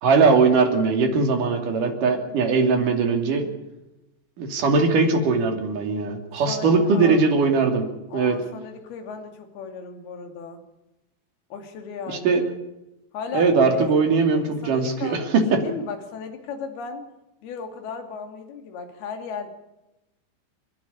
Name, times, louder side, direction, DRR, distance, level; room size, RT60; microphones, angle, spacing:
voice 1, 0.0-3.5 4.4-7.9 8.1-8.4 12.2-12.4 13.3-15.6, right 4 dB, 50° right, 4 dB, 4.0 m, -20 dB
voice 2, 6.5-7.2 8.1-10.6 11.5-12.4 13.1-13.9 14.3-15.2 15.5-17.0 17.4-19.5, left 5 dB, 60° left, 5 dB, 4.4 m, -35 dB
29.0 x 11.5 x 9.9 m, 0.95 s
omnidirectional pair, 5.1 m